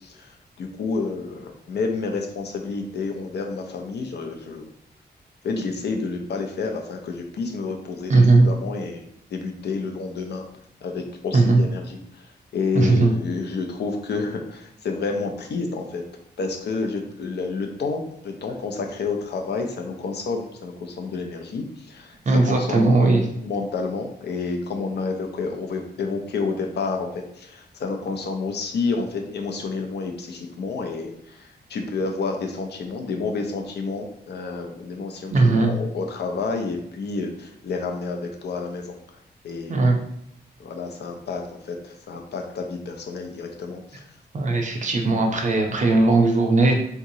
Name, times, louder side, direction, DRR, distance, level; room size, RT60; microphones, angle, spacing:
voice 1, 0.0-4.7 5.4-10.4 10.8-16.0 16.4-39.0 39.4-39.9 40.6-44.1, left 4 dB, 75° left, 3 dB, 0.6 m, -30 dB
voice 2, 8.1-8.5 11.3-11.6 12.7-13.1 22.3-23.2 35.3-35.7 39.7-40.0 44.3-46.8, right 3 dB, 45° right, 2 dB, 0.6 m, -18 dB
3.6 x 2.9 x 2.7 m, 0.71 s
wide cardioid pair, 115°, 17 cm